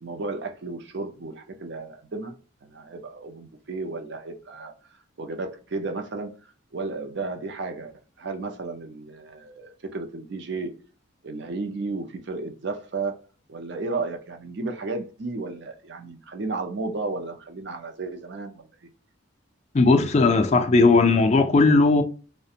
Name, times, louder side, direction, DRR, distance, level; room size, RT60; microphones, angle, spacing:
voice 1, 0.0-2.4 2.6-6.3 6.7-10.7 11.2-13.2 13.5-18.7, right 3 dB, 55° right, 0.5 m, -33 dB
voice 2, 19.7-22.0, left 3 dB, 35° left, 0.3 m, -17 dB
2.4 x 2.1 x 2.7 m
head